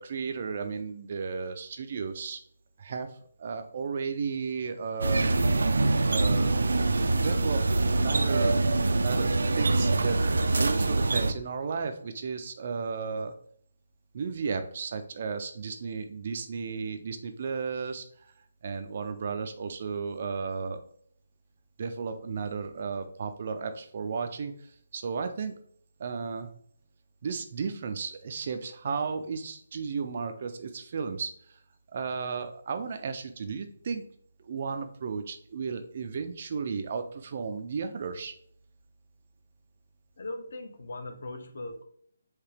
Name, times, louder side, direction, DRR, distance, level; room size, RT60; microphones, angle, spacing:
voice 1, 0.0-2.4 2.8-3.1 3.4-5.3 6.1-6.5 7.2-7.6 7.9-8.6 8.9-10.2 10.6-13.3 14.1-18.3 18.6-20.8 21.8-25.5 26.0-26.5 27.2-31.6 31.9-34.0 34.4-38.3, right 5 dB, 30° right, 8 dB, 0.4 m, -34 dB
sound 1, 5.0-11.3, right 2 dB, 85° right, 0.5 m, -24 dB
voice 2, 40.2-41.8, left 2 dB, 50° left, 6 dB, 0.8 m, -39 dB
4.7 x 2.8 x 3.3 m, 0.63 s
hypercardioid pair, 180°, 0 cm